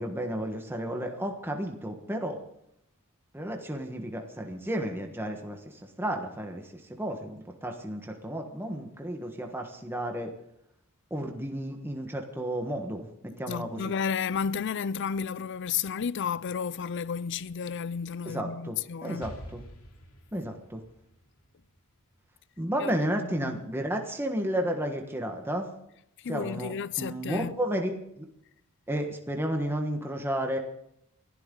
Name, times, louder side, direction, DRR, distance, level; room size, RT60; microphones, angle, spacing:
voice 1, 0.0-2.4 3.3-6.6 6.9-10.3 11.1-13.1 13.4-13.8 18.3-19.6 20.3-20.8 22.6-25.7 26.3-28.3 28.9-30.6, right 1 dB, 10° right, 1.4 m, -32 dB
voice 2, 13.5-19.3 22.8-23.0 23.2-23.6 26.2-27.6, left 6 dB, 55° left, 0.5 m, -32 dB
Explosion, 19.2-23.0, equal, 75° left, 2.8 m, -48 dB
28.0 x 12.0 x 3.8 m
head